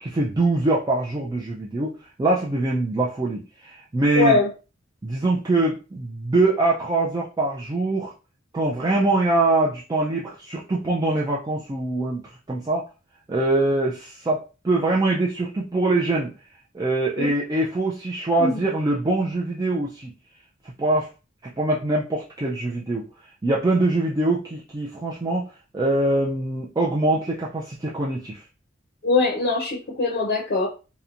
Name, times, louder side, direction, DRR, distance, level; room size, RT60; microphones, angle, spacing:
voice 1, 0.0-1.9 2.2-4.4 5.0-8.1 8.5-12.2 12.5-12.9 13.3-16.3 16.7-20.1 20.6-21.1 21.4-23.0 23.4-25.5 25.7-28.4, right 2 dB, 20° right, 0.3 m, -23 dB
voice 2, 4.2-4.5 17.2-17.3 18.4-18.6 29.0-30.7, left 3 dB, 50° left, 0.6 m, -21 dB
2.9 x 2.1 x 2.4 m
head